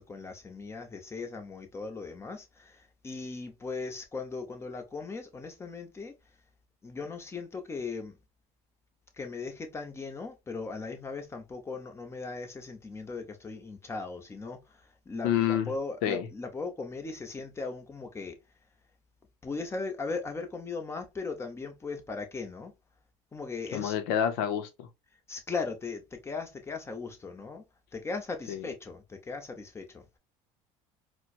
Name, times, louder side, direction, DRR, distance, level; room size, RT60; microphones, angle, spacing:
voice 1, 0.0-6.1 6.8-8.2 9.1-18.4 19.4-22.7 23.3-24.0 25.3-27.6 27.9-30.2, left 4 dB, 20° left, 0.9 m, -38 dB
voice 2, 15.2-15.7 16.0-16.3 23.7-24.9 28.5-28.7, left 9 dB, 80° left, 0.7 m, -28 dB
4.3 x 2.2 x 2.5 m
supercardioid pair, 105°, 14 cm